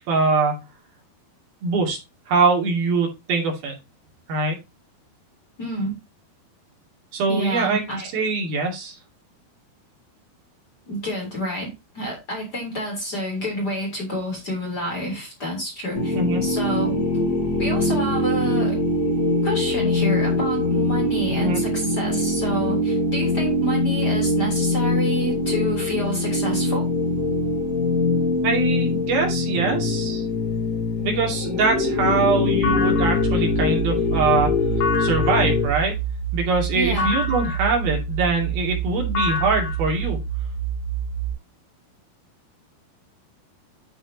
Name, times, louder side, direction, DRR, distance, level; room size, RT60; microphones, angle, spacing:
voice 1, 0.1-0.6 1.6-2.0 2.3-3.7 4.3-4.6 7.1-9.0 16.1-16.4 21.4-21.6 28.4-30.3 31.0-34.6 35.0-36.0 36.3-40.2, right 3 dB, 70° right, 4.4 m, -23 dB
voice 2, 5.6-5.9 7.3-8.1 10.9-16.2 16.4-17.0 17.6-18.8 19.4-26.9 36.7-37.1, equal, 25° left, 3.7 m, -28 dB
sound 1, 15.9-35.7, left 2 dB, 40° left, 4.9 m, -23 dB
sound 2, 32.6-41.3, right 4 dB, 65° left, 3.3 m, -27 dB
10.0 x 6.1 x 2.8 m
omnidirectional pair, 4.6 m